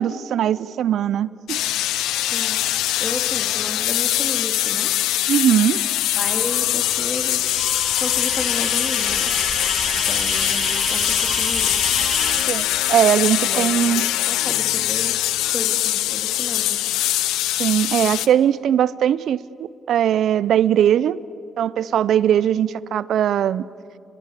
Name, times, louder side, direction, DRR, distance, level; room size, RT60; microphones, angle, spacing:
voice 1, 0.0-1.6 5.3-5.8 12.5-14.0 17.6-19.4 19.9-21.2 21.6-23.6, right 10 dB, 70° right, 20 dB, 0.6 m, -19 dB
sound 1, 1.5-18.3, left 14 dB, 85° left, 0.6 m, -22 dB
voice 2, 2.2-2.6 3.0-4.9 6.2-7.5 8.0-9.3 10.1-11.7 13.5-15.2 15.5-16.8 18.2-18.3, left 2 dB, 25° left, 5 dB, 3.2 m, -33 dB
sound 2, 6.2-13.9, right 2 dB, 40° right, 5.5 m, -45 dB
sound 3, 7.4-12.4, equal, ahead, 2.8 m, -28 dB
30.0 x 22.5 x 8.3 m, 2.8 s
supercardioid pair, 55°, 0 cm